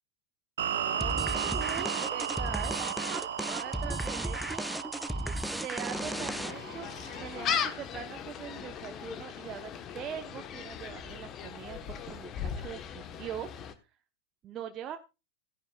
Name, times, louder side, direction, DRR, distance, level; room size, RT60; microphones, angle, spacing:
voice 1, 0.6-2.8 3.1-4.6 5.5-6.9 7.2-13.5 14.4-15.0, right 9 dB, 35° right, 5 dB, 1.0 m, -42 dB
sound 1, 0.6-7.8, right 9 dB, 70° right, 0.9 m, -36 dB
sound 2, 1.0-6.8, right 1 dB, ahead, 0.4 m, -35 dB
Gull seagull, 5.9-13.7, left 8 dB, 35° left, 1.2 m, -38 dB
15.5 x 10.0 x 2.4 m, 0.27 s
hypercardioid pair, 100°, 0 cm